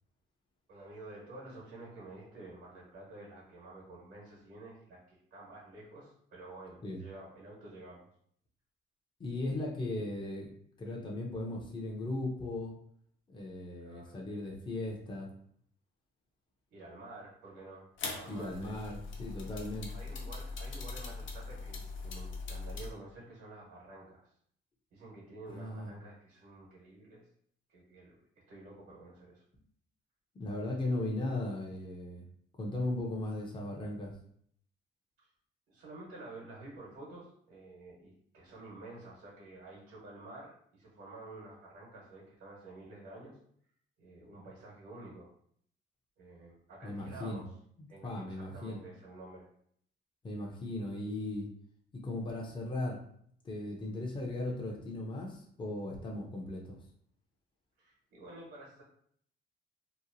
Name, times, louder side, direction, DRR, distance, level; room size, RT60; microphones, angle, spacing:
voice 1, 0.7-8.1 13.8-14.2 16.7-17.8 18.1-18.7 19.9-24.3 24.9-27.2 27.7-28.2 28.5-29.4 35.2-35.3 35.7-43.4 44.0-45.3 46.2-47.5 47.9-49.5 57.8-58.8, right 2 dB, 75° right, -4 dB, 1.2 m, -50 dB
voice 2, 9.2-10.5 10.8-12.7 13.3-15.3 18.3-19.9 25.5-25.9 30.3-32.2 32.6-34.1 46.8-47.4 48.0-48.8 50.2-51.5 51.9-53.0 53.4-56.8, left 2 dB, 25° left, -1 dB, 0.6 m, -37 dB
sound 1, 18.0-22.9, left 4 dB, 70° left, 0.6 m, -41 dB
2.9 x 2.1 x 2.6 m, 0.65 s
cardioid pair, 90°, 20 cm